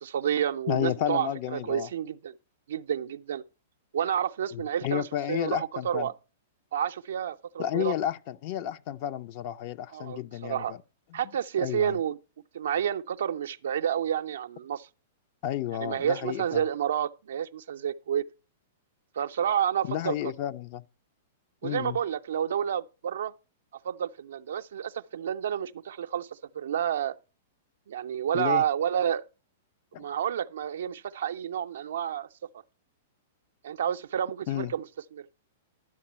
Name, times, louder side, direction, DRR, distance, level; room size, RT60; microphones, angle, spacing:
voice 1, 0.0-2.3 2.7-3.4 3.9-6.1 6.7-7.9 9.9-10.7 11.1-12.2 12.5-14.9 15.7-18.2 19.2-20.3 21.6-23.3 23.8-27.1 27.9-29.3 30.0-32.3 33.6-35.3, right 9 dB, 65° right, 0.4 m, -30 dB
voice 2, 0.7-1.9 4.5-6.1 7.6-10.8 11.6-12.0 15.4-16.6 19.9-20.8 21.6-22.0 28.3-28.6 29.9-30.0 34.5-34.7, left 12 dB, 45° left, 0.5 m, -31 dB
10.5 x 7.1 x 4.3 m
figure-of-eight pair, 105°, 0 cm